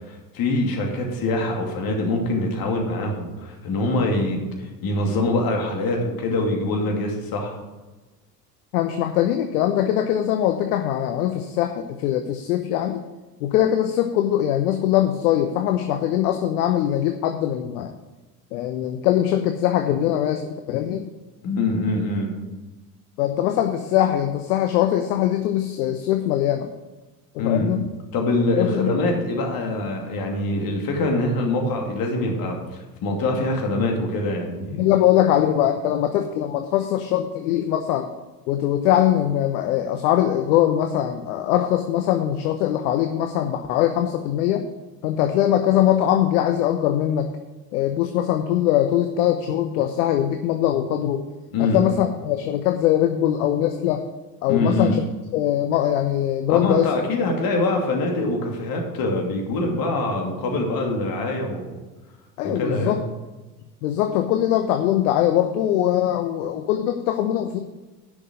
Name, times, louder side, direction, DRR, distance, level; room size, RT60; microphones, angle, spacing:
voice 1, 0.1-7.6 21.4-22.3 27.4-27.7 28.1-34.9 51.5-51.8 54.5-55.0 56.5-61.7 62.4-63.0, left 2 dB, 45° left, 1 dB, 2.8 m, -24 dB
voice 2, 8.7-13.0 13.4-17.9 18.5-21.0 23.2-26.7 27.3-27.9 28.6-29.0 34.8-38.1 38.5-44.6 45.0-47.3 47.7-51.2 51.6-54.0 54.4-55.0 55.3-56.9 62.4-63.0 63.8-67.6, left 11 dB, 60° left, 6 dB, 0.9 m, -22 dB
10.5 x 6.2 x 6.4 m, 1.2 s
figure-of-eight pair, 65°, 49 cm